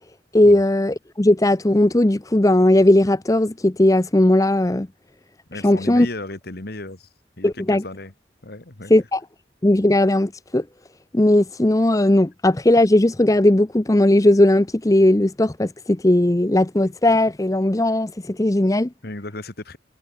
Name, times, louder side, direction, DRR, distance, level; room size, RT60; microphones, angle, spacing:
voice 1, 0.3-4.9 5.6-6.1 7.4-7.8 8.9-9.2 9.6-10.6 11.1-18.9, left 1 dB, 15° left, 0.6 m, -17 dB
voice 2, 5.5-7.1 7.4-8.1 8.4-8.9 19.0-19.8, left 2 dB, 55° left, 1.8 m, -34 dB
head